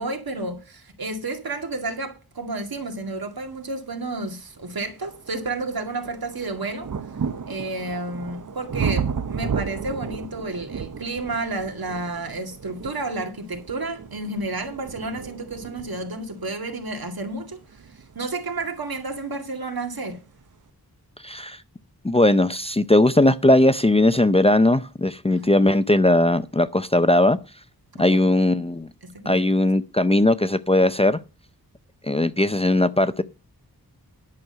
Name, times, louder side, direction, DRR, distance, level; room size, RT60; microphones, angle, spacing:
voice 1, 0.0-6.9 7.5-17.8 18.2-20.2 25.3-25.6 27.9-28.2 29.0-29.5, right 2 dB, 70° right, 2.2 m, -31 dB
sound 1, 3.9-4.0 4.6-19.3 20.2-20.3, right 6 dB, 55° right, 0.8 m, -33 dB
voice 2, 21.2-21.6 22.0-27.4 28.0-28.9 29.3-31.2 32.0-33.2, left 1 dB, 15° left, 0.5 m, -19 dB
11.0 x 6.2 x 6.7 m
wide cardioid pair, 95°, 38 cm